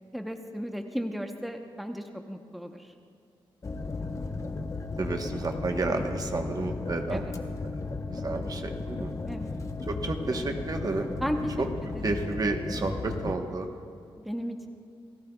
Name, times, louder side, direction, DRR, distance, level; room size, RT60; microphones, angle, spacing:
voice 1, 0.1-2.9 7.1-7.3 9.3-9.5 10.3-10.6 11.2-11.5 11.8-12.1 14.2-14.7, equal, ahead, 4 dB, 0.9 m, -35 dB
sound 1, 3.6-13.4, left 3 dB, 35° left, 1.0 m, -35 dB
voice 2, 5.0-7.3 8.1-9.1 9.9-11.1 11.6-11.7 12.0-13.7, right 3 dB, 40° right, 4 dB, 1.2 m, -31 dB
28.5 x 14.0 x 2.4 m, 2.5 s
cardioid pair, 70°, 9 cm